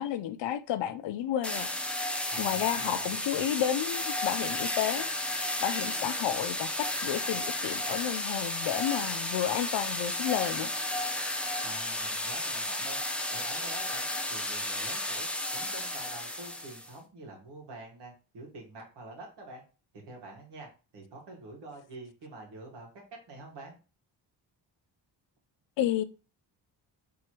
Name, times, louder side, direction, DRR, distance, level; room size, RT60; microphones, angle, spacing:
voice 1, 0.0-1.7 2.4-5.1 5.6-10.7 25.8-26.0, left 11 dB, 80° left, 0.6 m, -31 dB
sound 1, 1.4-16.9, left 1 dB, 5° left, 0.4 m, -33 dB
voice 2, 2.3-3.3 11.6-13.0 13.3-19.6 20.1-20.7 20.9-22.9 23.3-23.8, right 2 dB, 70° right, 1.8 m, -46 dB
4.8 x 3.5 x 2.9 m
cardioid pair, 140°, 43 cm